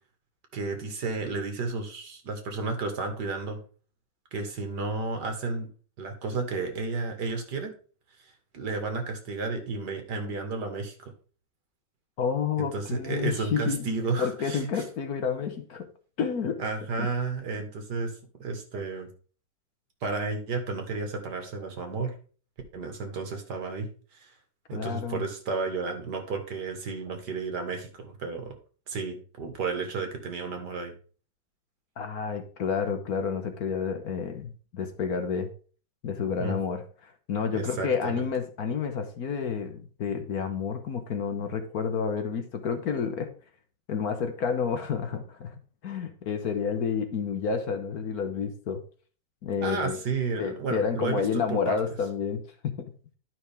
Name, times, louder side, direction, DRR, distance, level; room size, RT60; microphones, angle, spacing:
voice 1, 0.5-3.6 4.3-5.7 6.0-7.7 8.5-10.9 12.6-14.8 16.6-18.1 18.4-19.1 20.0-22.1 22.7-24.3 24.7-28.5 28.9-30.9 36.4-36.6 37.5-38.2 49.6-51.8, right 4 dB, 65° right, 5 dB, 2.1 m, -32 dB
voice 2, 12.2-13.8 14.2-15.9 16.2-16.6 17.0-17.1 24.7-25.2 32.0-35.5 36.0-43.3 43.9-45.5 45.8-48.8 49.4-50.0 50.4-52.4 52.8-52.9, left 6 dB, 60° left, 7 dB, 1.4 m, -30 dB
11.0 x 5.6 x 3.5 m, 0.40 s
omnidirectional pair, 2.0 m